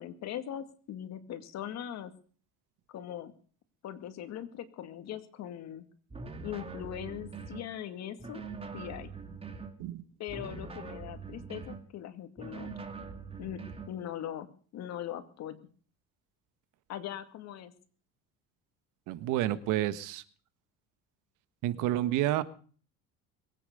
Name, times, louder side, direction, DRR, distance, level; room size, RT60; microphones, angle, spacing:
voice 1, 0.0-2.1 2.9-3.3 3.8-5.8 6.4-8.4 8.7-9.1 10.2-12.7 13.4-14.5 14.7-15.6 16.9-17.7, left 10 dB, 55° left, 10 dB, 2.2 m, -40 dB
sound 1, 6.1-7.7 8.2-9.8 10.3-11.9 12.4-14.0, right 4 dB, 20° right, 2.4 m, -43 dB
voice 2, 19.1-20.2 21.6-22.4, right 14 dB, 75° right, 13 dB, 1.5 m, -29 dB
22.0 x 9.3 x 6.7 m, 0.43 s
cardioid pair, 125°, 31 cm